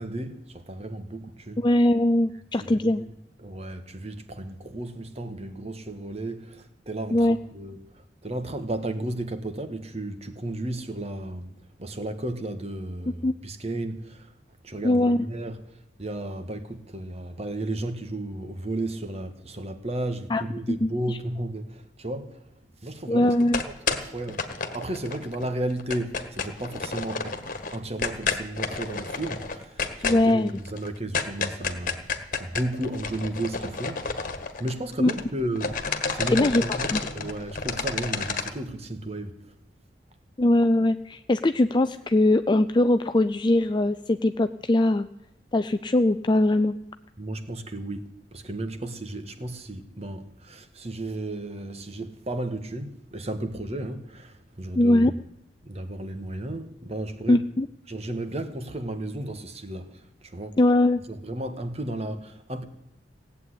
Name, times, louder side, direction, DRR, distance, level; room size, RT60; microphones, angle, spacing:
voice 1, 0.0-1.7 2.6-3.1 3.4-11.5 11.8-14.3 14.6-15.6 16.0-22.4 22.8-23.5 23.9-24.5 24.7-32.1 32.4-34.2 34.6-39.4 47.2-55.2 55.6-57.4 57.9-60.6 61.1-62.6, right 1 dB, 35° right, 1.7 m, -34 dB
voice 2, 1.6-3.0 7.1-7.4 13.2-13.3 14.8-15.2 20.3-20.4 20.7-21.2 23.1-23.6 30.0-30.5 35.0-35.1 36.3-36.6 36.9-37.0 40.4-45.1 45.5-46.8 54.8-55.1 57.3-57.7 60.6-61.0, left 1 dB, 25° left, 0.5 m, -21 dB
sound 1, 23.3-25.4 25.7-35.3 35.5-38.5, left 5 dB, 50° left, 1.7 m, -30 dB
17.5 x 8.4 x 9.9 m
head